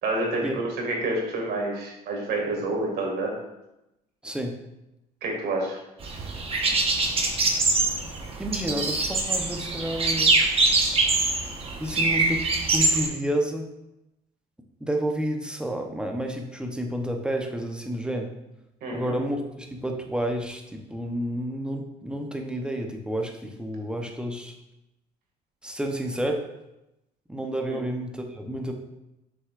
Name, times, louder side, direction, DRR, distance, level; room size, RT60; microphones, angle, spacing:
voice 1, 0.0-3.3 5.2-5.8 18.8-19.1 27.7-27.8, right 2 dB, 70° right, 0 dB, 2.1 m, -28 dB
voice 2, 4.2-4.5 8.4-10.3 11.8-12.4 12.7-13.7 14.8-18.3 18.9-24.5 25.6-26.4 27.3-28.7, right 1 dB, 5° right, 3 dB, 0.8 m, -30 dB
sound 1, 6.0-13.1, right 3 dB, 35° right, 1.2 m, -24 dB
7.8 x 6.2 x 2.5 m, 0.92 s
cardioid pair, 110°, 17 cm